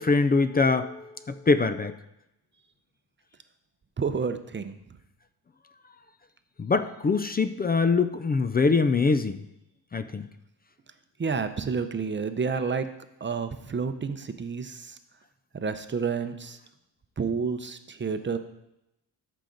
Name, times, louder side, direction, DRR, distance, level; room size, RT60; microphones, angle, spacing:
voice 1, 0.0-1.9 6.6-9.4 9.9-10.3, left 4 dB, 25° left, 11 dB, 0.4 m, -23 dB
voice 2, 4.0-4.8 11.2-12.9 13.2-15.0 15.5-16.6 17.2-18.4, right 5 dB, 25° right, 9 dB, 0.6 m, -30 dB
13.5 x 5.8 x 3.9 m, 0.86 s
cardioid pair, 110°, 43 cm